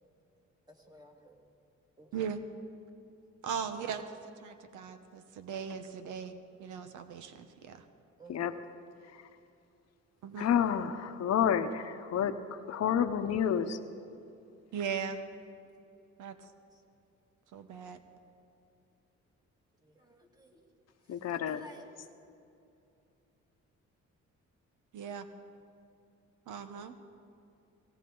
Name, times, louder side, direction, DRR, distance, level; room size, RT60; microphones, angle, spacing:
voice 1, 0.7-1.4 2.0-2.3 8.2-8.6 10.8-11.3 19.8-20.7 21.1-21.2 21.5-21.8, right 1 dB, 15° right, 2 dB, 2.0 m, -54 dB
voice 2, 2.1-2.4 3.4-7.9 10.2-10.5 14.7-15.2 16.2-16.5 17.5-18.0 24.9-25.3 26.5-27.0, right 7 dB, 80° right, 9 dB, 1.0 m, -39 dB
voice 3, 10.4-13.8 21.1-21.6, left 8 dB, 60° left, 9 dB, 0.9 m, -30 dB
17.5 x 17.0 x 3.9 m, 2.7 s
cardioid pair, 90°, 30 cm